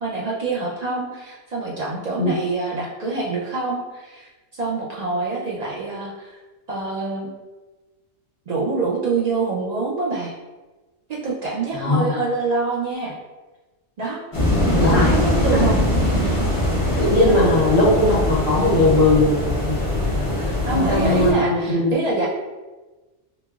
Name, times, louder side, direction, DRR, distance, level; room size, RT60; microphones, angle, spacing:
voice 1, 0.0-4.3 4.6-6.4 6.7-7.3 8.5-10.3 11.1-13.2 14.0-14.2 14.8-15.8 16.0-16.3 17.2-17.4 20.6-22.3, right 3 dB, 70° right, -5 dB, 0.4 m, -25 dB
voice 2, 11.7-12.1 14.8-15.1 15.5-15.6 17.0-20.3 20.7-22.0, left 2 dB, 75° left, -6 dB, 1.2 m, -19 dB
sound 1, 14.3-21.3, left 1 dB, 30° left, 0.7 m, -21 dB
5.1 x 2.0 x 2.3 m, 1.2 s
omnidirectional pair, 1.4 m